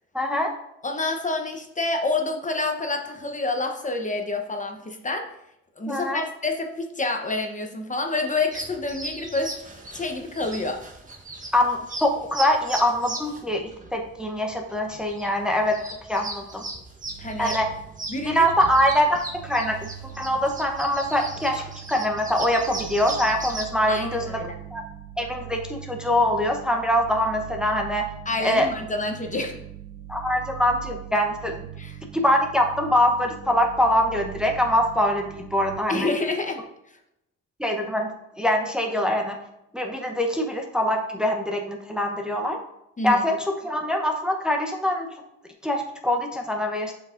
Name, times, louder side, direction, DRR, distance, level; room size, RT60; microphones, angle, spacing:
voice 1, 0.1-0.5 5.9-6.2 11.5-15.8 16.1-16.6 17.4-17.7 18.3-19.9 20.2-21.6 21.9-24.4 24.7-24.8 25.2-28.1 28.4-28.7 30.1-31.6 32.1-36.1 37.6-39.4 39.7-42.6 43.0-45.1 45.6-46.9, left 1 dB, 5° right, 2 dB, 0.8 m, -23 dB
voice 2, 0.8-5.3 5.8-9.5 9.9-10.8 17.2-17.6 18.1-18.5 23.9-24.5 28.3-29.6 31.8-32.0 35.9-36.6 43.0-43.2, left 2 dB, 25° left, 4 dB, 0.9 m, -28 dB
sound 1, 8.5-23.7, right 2 dB, 25° right, 1.5 m, -38 dB
sound 2, 17.0-35.8, right 12 dB, 50° right, 0.7 m, -41 dB
7.7 x 4.8 x 2.5 m, 0.83 s
cardioid pair, 90°, 30 cm